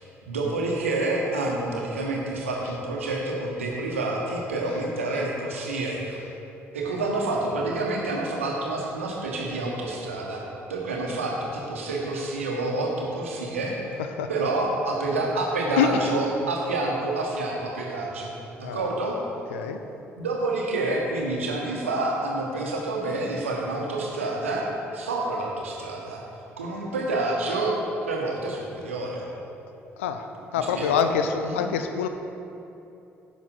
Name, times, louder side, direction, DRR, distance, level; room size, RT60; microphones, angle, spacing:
voice 1, 0.3-6.2 6.7-13.8 14.3-19.1 20.2-24.7 24.9-26.2 26.6-27.8 28.0-29.3 30.5-31.0 31.4-31.6, right 2 dB, 80° right, -1 dB, 1.0 m, -28 dB
voice 2, 15.8-16.3 18.6-18.9 19.5-19.8 30.0-30.3 30.5-32.1, left 7 dB, 75° left, 7 dB, 0.5 m, -25 dB
10.0 x 6.1 x 3.8 m, 2.8 s
figure-of-eight pair, 45°, 7 cm